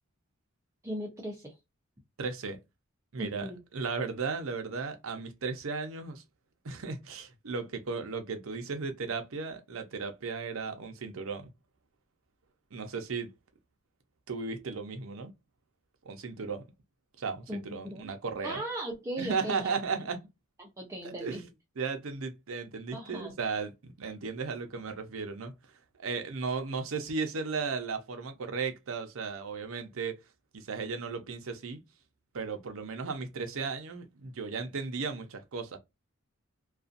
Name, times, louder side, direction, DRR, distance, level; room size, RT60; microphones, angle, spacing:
voice 1, 0.8-1.5 3.2-3.6 17.5-18.1 18.4-19.7 20.6-21.4 22.9-23.4, right 1 dB, 15° right, 0.5 m, -38 dB
voice 2, 2.2-2.6 3.1-6.2 6.6-11.5 12.7-13.3 14.3-15.3 16.0-16.6 17.2-18.6 19.2-20.2 21.0-21.5 21.8-25.5 26.0-30.2 30.5-31.8 32.3-35.8, right 4 dB, 70° right, 0.6 m, -35 dB
2.5 x 2.3 x 2.4 m
head